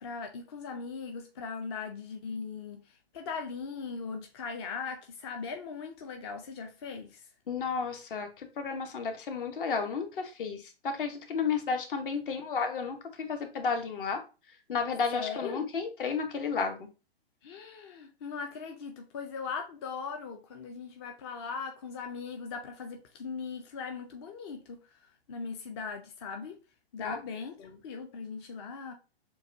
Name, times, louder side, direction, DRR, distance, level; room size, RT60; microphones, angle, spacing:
voice 1, 0.0-2.8 3.1-7.2 15.1-15.7 17.4-24.8 25.3-26.5 26.9-28.9, left 5 dB, 25° left, 0.4 m, -39 dB
voice 2, 7.5-14.2 14.7-16.9 27.0-27.2 27.6-27.7, left 5 dB, 55° left, 1.0 m, -32 dB
6.7 x 2.3 x 2.6 m
figure-of-eight pair, 125°, 31 cm